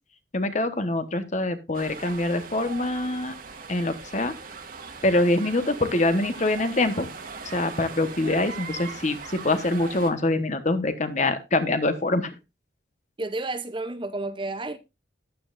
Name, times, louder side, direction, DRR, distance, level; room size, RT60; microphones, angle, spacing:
voice 1, 0.3-3.3 3.7-4.3 5.0-7.1 7.5-12.3, left 2 dB, 40° left, 1.2 m, -24 dB
sound 1, 1.7-10.1, right 4 dB, 50° right, 1.6 m, -39 dB
voice 2, 13.2-14.8, right 2 dB, 25° right, 0.6 m, -31 dB
14.0 x 10.0 x 2.5 m
head